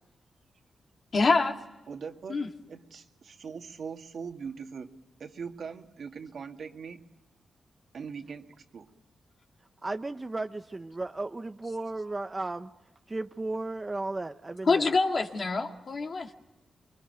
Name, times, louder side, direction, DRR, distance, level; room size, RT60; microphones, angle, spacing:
voice 1, 1.1-1.5 2.3-2.5 14.7-16.3, left 3 dB, 50° left, 4 dB, 2.3 m, -25 dB
voice 2, 1.9-2.4 2.7-4.9 5.2-7.0 7.9-8.9, right 6 dB, 70° right, 4 dB, 2.1 m, -41 dB
voice 3, 9.8-12.7 13.1-14.9, right 2 dB, 25° right, 8 dB, 0.8 m, -34 dB
26.0 x 23.5 x 9.1 m, 1.1 s
cardioid pair, 80°, 0 cm